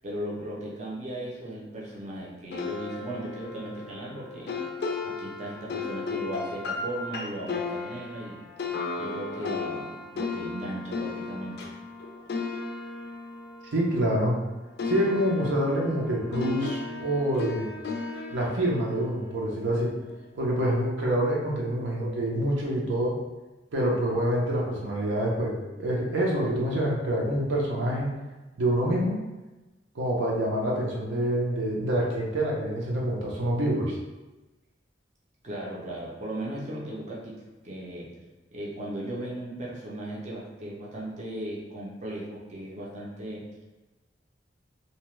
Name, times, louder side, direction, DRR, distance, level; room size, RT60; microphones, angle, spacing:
voice 1, 0.0-4.6 5.0-8.4 8.9-11.7 35.4-37.4 37.6-38.1 38.5-43.4, right 1 dB, 40° right, -4 dB, 0.5 m, -37 dB
sound 1, 2.5-14.5 14.8-20.0, left 4 dB, 60° left, 0.3 m, -35 dB
voice 2, 13.7-14.4 14.8-17.7 18.3-19.9 20.3-23.2 23.7-28.1 28.6-29.2 29.9-34.0, right 1 dB, 85° right, -3 dB, 0.7 m, -26 dB
2.8 x 2.2 x 3.1 m, 1.1 s
head